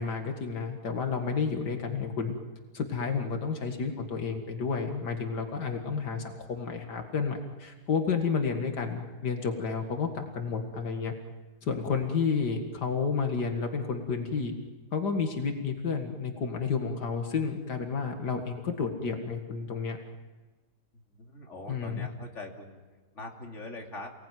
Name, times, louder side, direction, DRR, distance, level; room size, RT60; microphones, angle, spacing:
voice 1, 0.0-2.3 2.7-11.1 11.6-14.5 14.9-20.0 21.7-22.1, left 5 dB, 90° left, 4 dB, 2.5 m, -31 dB
voice 2, 20.9-22.8 23.1-24.1, left 2 dB, 45° left, 1 dB, 3.4 m, -42 dB
29.5 x 19.0 x 9.3 m, 1.3 s
omnidirectional pair, 1.7 m